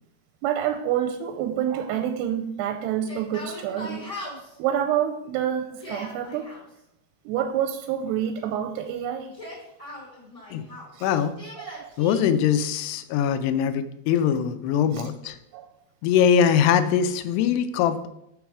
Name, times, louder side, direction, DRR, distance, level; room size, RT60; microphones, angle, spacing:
voice 1, 0.4-6.5 7.3-9.3 10.9-11.3 11.7-11.9 15.5-15.7, right 10 dB, 85° right, 6 dB, 2.7 m, -28 dB
Yell, 3.0-4.5 5.6-6.6 9.2-10.9 11.4-12.2, left 1 dB, 10° left, 1.6 m, -39 dB
voice 2, 11.0-11.3 12.0-15.4 16.0-18.1, left 8 dB, 85° left, 11 dB, 2.7 m, -22 dB
7.0 x 6.3 x 4.8 m, 0.80 s
omnidirectional pair, 4.7 m